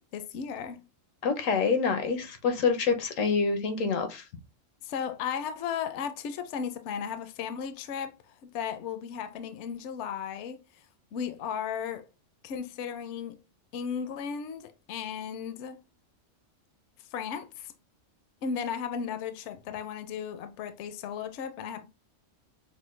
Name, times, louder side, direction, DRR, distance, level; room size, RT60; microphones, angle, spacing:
voice 1, 0.1-0.8 4.8-10.9 11.1-12.1 12.4-13.4 13.7-15.8 17.1-17.7 18.4-21.8, left 7 dB, 70° left, 0.8 m, -35 dB
voice 2, 1.2-4.2, left 5 dB, 90° left, 1.2 m, -26 dB
5.9 x 2.1 x 3.1 m
omnidirectional pair, 1.3 m